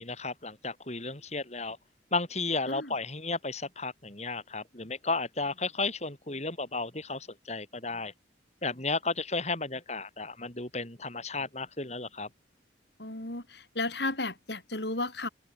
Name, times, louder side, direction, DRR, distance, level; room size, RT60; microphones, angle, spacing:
voice 1, 0.0-1.8 2.1-8.1 8.6-12.3, left 3 dB, 35° left, 3.7 m, -33 dB
voice 2, 13.0-15.3, left 2 dB, 65° left, 6.0 m, -34 dB
head